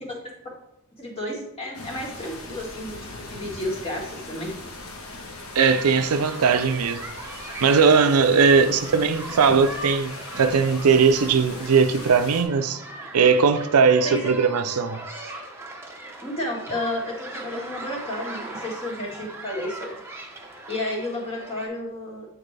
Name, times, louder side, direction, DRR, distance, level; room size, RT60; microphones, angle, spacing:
voice 1, 1.0-3.0 3.3-4.5 14.0-14.3 16.2-19.9 20.7-22.3, left 1 dB, 25° left, 1.9 m, -31 dB
sound 1, 1.7-12.4, left 2 dB, 80° left, 1.2 m, -40 dB
sound 2, 5.5-21.7, right 2 dB, 10° right, 0.8 m, -39 dB
voice 2, 5.5-7.1 7.6-12.8 13.1-15.0, right 5 dB, 85° right, 0.5 m, -19 dB
8.9 x 4.3 x 3.3 m
head